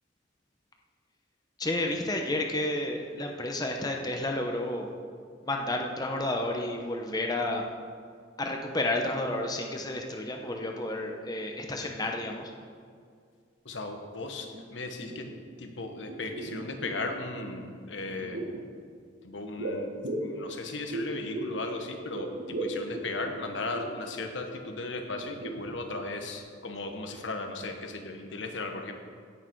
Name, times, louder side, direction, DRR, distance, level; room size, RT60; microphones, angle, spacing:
voice 1, 1.6-4.9 5.4-7.7 8.4-12.5, left 1 dB, 20° left, 2 dB, 0.9 m, -31 dB
voice 2, 13.6-15.3 15.6-18.4 19.2-28.9, left 2 dB, 80° left, 4 dB, 1.2 m, -36 dB
sound 1, 14.5-14.6 14.9-15.7 16.0-17.2 18.0-18.7 19.6-21.7 21.9-24.0 24.5-24.6 25.0-26.1 26.3-26.4, right 1 dB, 90° right, 1.5 m, -37 dB
17.0 x 6.7 x 4.7 m, 2.2 s
head